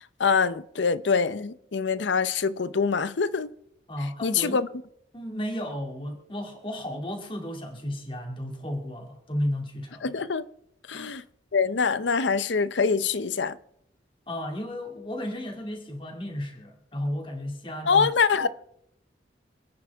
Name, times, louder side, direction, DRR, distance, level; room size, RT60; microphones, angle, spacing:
voice 1, 0.2-3.5 4.2-4.7 10.0-10.4 10.9-11.2 11.5-13.6 17.9-18.5, left 5 dB, 80° left, 0.7 m, -24 dB
voice 2, 3.9-4.6 5.1-10.1 10.9-11.1 14.3-18.1 18.4-18.5, left 1 dB, 25° left, 2.4 m, -33 dB
26.5 x 9.7 x 3.5 m
head